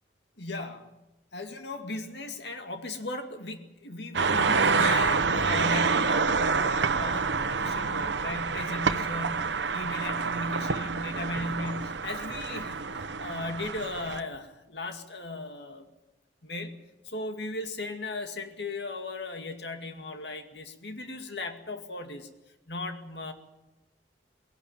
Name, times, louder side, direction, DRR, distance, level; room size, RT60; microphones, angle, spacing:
voice 1, 0.4-0.9 1.3-15.9 16.4-22.3 22.7-23.3, left 2 dB, 70° left, 6 dB, 2.2 m, -37 dB
sound 1, 4.1-14.2, right 5 dB, 85° right, 1.1 m, -27 dB
20.5 x 17.5 x 9.0 m, 1.0 s
head